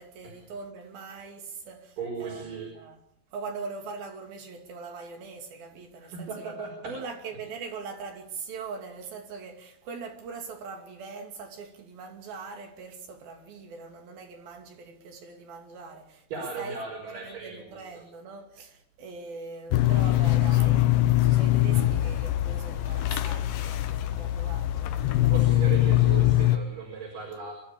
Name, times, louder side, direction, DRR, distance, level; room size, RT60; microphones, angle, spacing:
voice 1, 0.0-3.0 3.3-6.6 6.9-16.3 16.6-16.8 17.1-25.8, right 4 dB, 85° right, 4.5 m, -42 dB
voice 2, 2.0-2.7 6.0-6.9 16.3-18.0 25.3-27.5, right 5 dB, 65° right, 6.5 m, -37 dB
sound 1, 19.7-26.6, left 15 dB, 75° left, 2.7 m, -23 dB
27.0 x 13.0 x 8.6 m
omnidirectional pair, 4.1 m